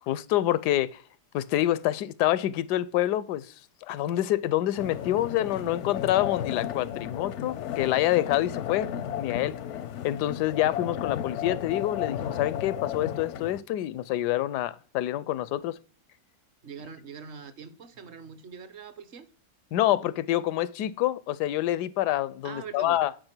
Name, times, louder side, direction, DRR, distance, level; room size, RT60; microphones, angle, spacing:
voice 1, 0.1-1.0 1.3-3.5 3.8-8.9 9.2-9.6 10.0-15.8 19.7-23.1, left 13 dB, 85° left, 1.2 m, -27 dB
sound 1, 4.8-13.6, left 9 dB, 65° left, 0.7 m, -34 dB
voice 2, 16.6-19.3 22.4-23.0, right 6 dB, 50° right, 0.9 m, -43 dB
8.8 x 5.3 x 6.0 m
omnidirectional pair, 1.7 m